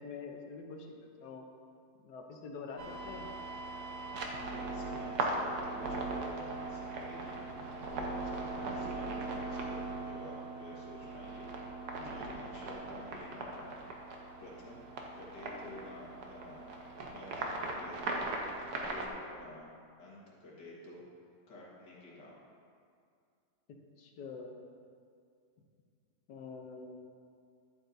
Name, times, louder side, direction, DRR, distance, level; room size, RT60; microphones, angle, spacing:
voice 1, 0.0-1.5 2.0-3.3 7.4-7.9 8.3-8.8 12.0-12.4 23.7-24.5 26.3-27.0, left 4 dB, 70° left, 2 dB, 1.4 m, -47 dB
sound 1, 2.8-19.1, right 2 dB, 70° right, 1.4 m, -39 dB
voice 2, 4.4-11.8 12.0-13.8 14.4-14.9 15.1-16.8 17.1-18.3 18.8-21.0 21.5-22.4, left 1 dB, 90° left, -5 dB, 2.3 m, -51 dB
10.5 x 8.0 x 2.7 m, 2.3 s
omnidirectional pair, 1.9 m